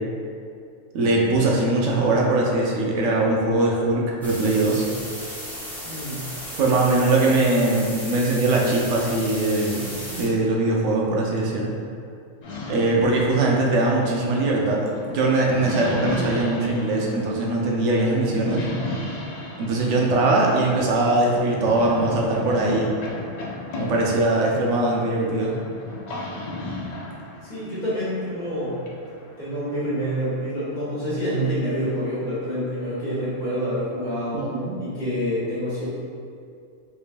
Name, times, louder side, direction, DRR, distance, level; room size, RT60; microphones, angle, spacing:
voice 1, 0.9-4.9 6.5-11.7 12.7-18.6 19.6-22.9 23.8-25.6 34.3-34.7, right 2 dB, 80° right, -2 dB, 0.9 m, -21 dB
sound 1, 4.2-10.3, equal, ahead, 0.5 m, -35 dB
voice 2, 5.8-6.3 27.4-28.8 29.4-34.4 34.8-35.9, equal, 40° left, -12 dB, 1.3 m, -27 dB
sound 2, 12.4-30.1, left 2 dB, 70° left, 0.4 m, -35 dB
3.3 x 2.9 x 2.4 m, 2.4 s
omnidirectional pair, 1.3 m